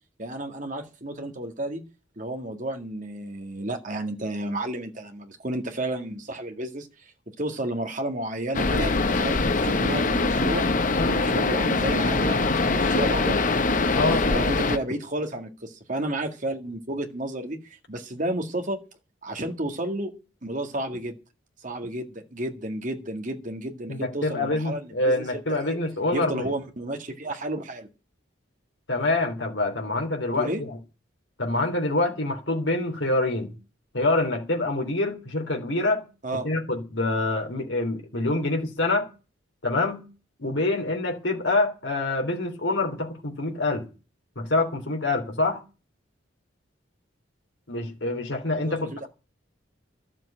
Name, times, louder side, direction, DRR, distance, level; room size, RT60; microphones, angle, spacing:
voice 1, 0.2-1.8 2.2-10.7 11.0-13.4 13.9-18.8 19.2-20.1 20.4-21.2 21.6-25.8 26.1-27.9 30.4-30.6 36.2-36.5 48.7-49.1, right 1 dB, 40° right, 1.9 m, -32 dB
sound 1, 8.5-14.8, left 3 dB, 40° left, 0.9 m, -23 dB
voice 2, 23.9-26.4 28.9-30.8 31.4-33.5 33.9-36.0 36.4-39.0 39.6-40.0 40.4-43.8 44.3-45.6 47.7-48.9, left 2 dB, 70° left, 3.2 m, -26 dB
12.5 x 7.5 x 8.9 m
head